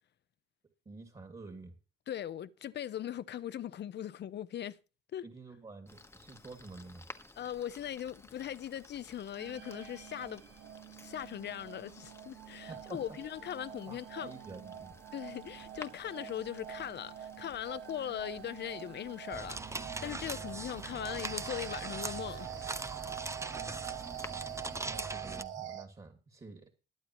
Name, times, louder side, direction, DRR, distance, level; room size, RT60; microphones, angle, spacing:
voice 1, 0.9-1.8 5.2-7.0 12.7-13.2 13.9-14.9 23.5-23.8 24.9-26.8, right 3 dB, 30° right, 2.5 m, -49 dB
voice 2, 2.1-4.8 5.1-5.2 7.4-10.4 11.0-14.3 15.1-22.5, left 10 dB, 60° left, 0.9 m, -40 dB
sound 1, 5.9-24.9, left 2 dB, 10° left, 1.2 m, -56 dB
sound 2, 9.4-25.8, right 10 dB, 70° right, 1.8 m, -45 dB
sound 3, 19.3-25.4, right 3 dB, 15° right, 0.7 m, -41 dB
21.0 x 8.7 x 3.1 m
cardioid pair, 90°, 20 cm